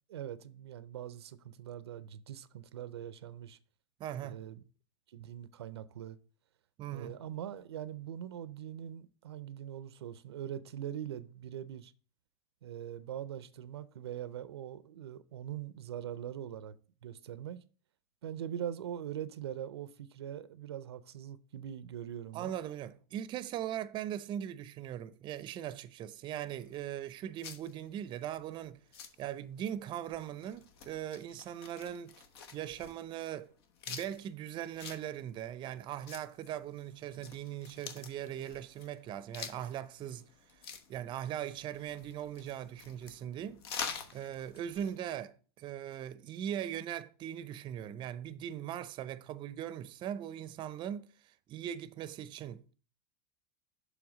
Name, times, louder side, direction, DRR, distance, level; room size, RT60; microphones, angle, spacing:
voice 1, 0.1-3.6 4.2-4.6 5.1-6.2 6.9-11.9 12.6-16.7 17.0-17.6 18.2-22.5, right 10 dB, 90° right, 0.5 m, -42 dB
voice 2, 4.0-4.4 6.8-7.1 22.3-28.8 29.2-32.1 32.5-33.5 33.9-40.3 40.9-43.6 44.1-51.1 51.5-52.7, right 10 dB, 35° right, 0.5 m, -40 dB
sound 1, 26.2-45.0, left 6 dB, 70° left, 1.0 m, -48 dB
7.0 x 3.4 x 6.1 m
hypercardioid pair, 110°, 13 cm